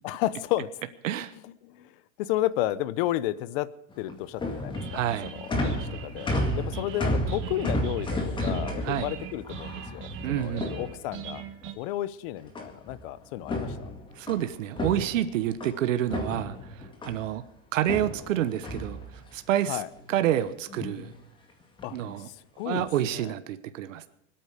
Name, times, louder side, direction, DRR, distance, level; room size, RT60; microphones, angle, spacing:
voice 1, 0.0-0.7 1.4-1.9 2.2-3.7 4.0-11.4 11.7-13.8 19.7-19.9 21.8-22.9 23.1-23.3, left 14 dB, 45° left, 17 dB, 0.9 m, -32 dB
sound 1, 3.9-11.4 12.5-13.0 13.3-15.8 16.1-17.3 17.8-19.5 19.9-20.4 20.7-21.1 21.8-22.1 22.7-23.0, left 1 dB, 15° left, 2.0 m, -32 dB
sound 2, 4.7-11.7, right 9 dB, 30° right, 1.5 m, -42 dB
voice 2, 4.9-5.3 8.8-9.1 10.2-10.8 14.2-16.6 17.0-17.4 17.7-19.0 19.3-19.8 20.1-21.1 21.9-22.3 22.6-24.1, right 12 dB, 80° right, 11 dB, 1.3 m, -28 dB
24.5 x 9.1 x 5.1 m, 0.75 s
supercardioid pair, 155°, 38 cm